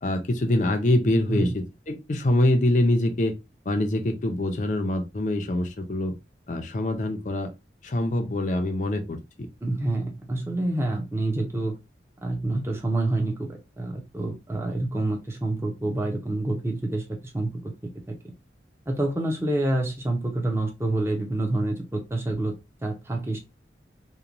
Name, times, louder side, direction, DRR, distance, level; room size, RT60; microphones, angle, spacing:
voice 1, 0.0-3.3 3.7-6.1 6.5-7.5 7.8-9.5, left 1 dB, 45° left, 0.5 m, -24 dB
voice 2, 9.6-11.8 12.2-18.2 18.9-22.5 22.8-23.4, right 2 dB, 15° right, 0.5 m, -27 dB
2.9 x 2.2 x 2.5 m
head